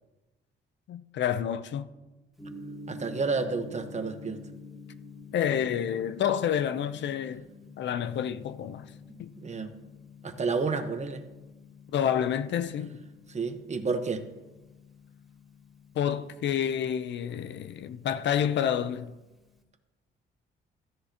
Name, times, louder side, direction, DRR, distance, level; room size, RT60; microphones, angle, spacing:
voice 1, 0.9-1.9 5.3-7.4 7.8-8.9 9.2-9.3 11.9-13.0 15.9-19.1, left 9 dB, 65° left, 0.6 m, -29 dB
Gong, 2.4-19.6, left 3 dB, ahead, 2.6 m, -49 dB
voice 2, 2.9-4.4 9.1-9.7 10.2-11.2 13.3-14.3, right 4 dB, 35° right, 1.1 m, -31 dB
15.0 x 10.0 x 2.9 m
cardioid pair, 90°, 20 cm